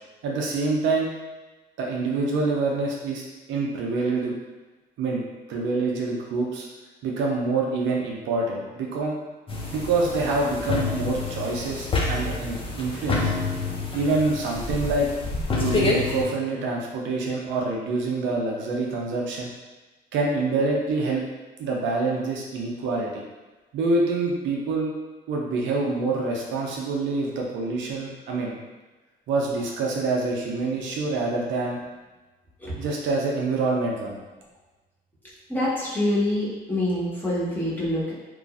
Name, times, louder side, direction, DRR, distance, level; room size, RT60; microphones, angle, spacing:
voice 1, 0.2-1.1 1.8-4.3 5.0-5.2 5.5-6.7 7.0-9.2 9.7-13.3 13.9-15.1 15.6-19.5 20.1-21.2 21.6-23.2 23.7-24.9 25.3-28.6 29.3-31.8 32.8-34.2, right 3 dB, 75° right, -2 dB, 0.6 m, -26 dB
sound 1, 9.5-16.2, left 3 dB, 30° left, 0.5 m, -27 dB
voice 2, 35.5-38.1, left 1 dB, 10° left, -8 dB, 1.2 m, -25 dB
3.0 x 2.4 x 2.4 m, 1.2 s
supercardioid pair, 75°, 20 cm